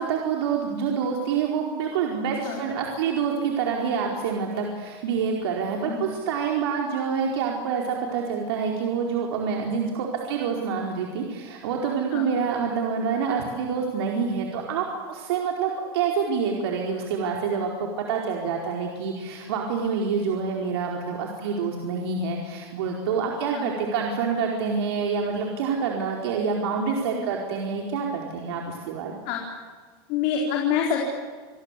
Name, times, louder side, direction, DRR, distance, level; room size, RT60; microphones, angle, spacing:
voice 1, 0.0-29.1, right 6 dB, 85° right, 0 dB, 4.7 m, -27 dB
voice 2, 30.1-31.0, left 8 dB, 45° left, 0 dB, 4.2 m, -26 dB
28.0 x 23.5 x 8.5 m, 1.5 s
supercardioid pair, 180°, 13 cm